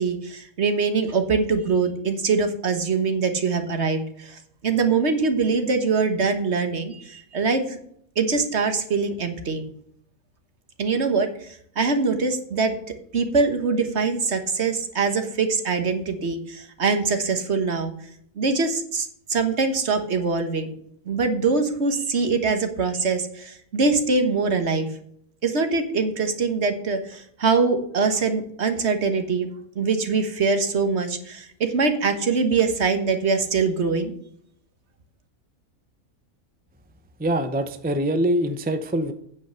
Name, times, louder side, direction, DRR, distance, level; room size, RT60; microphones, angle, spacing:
voice 1, 0.0-7.8 8.2-9.7 10.8-11.5 11.7-17.9 18.4-20.7 21.0-24.9 25.4-29.5 29.7-34.1, right 4 dB, 50° right, 7 dB, 1.5 m, -23 dB
voice 2, 37.2-39.1, right 1 dB, 10° right, 8 dB, 0.4 m, -24 dB
9.4 x 5.5 x 6.9 m, 0.64 s
omnidirectional pair, 1.6 m